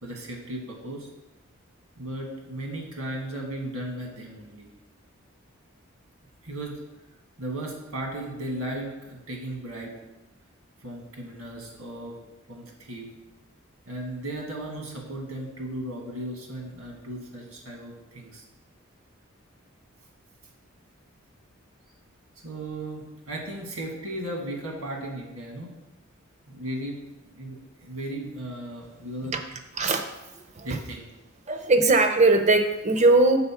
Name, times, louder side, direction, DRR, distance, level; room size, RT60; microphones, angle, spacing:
voice 1, 0.0-1.1 2.0-4.7 6.4-6.8 7.4-10.0 10.8-12.2 12.5-13.1 13.9-18.4 22.4-25.7 26.5-27.0 27.2-29.3 30.6-31.1, right 1 dB, 90° right, 0 dB, 1.8 m, -36 dB
voice 2, 29.8-30.8 31.5-33.4, right 2 dB, 30° right, 7 dB, 0.6 m, -20 dB
6.9 x 4.3 x 5.7 m, 0.99 s
head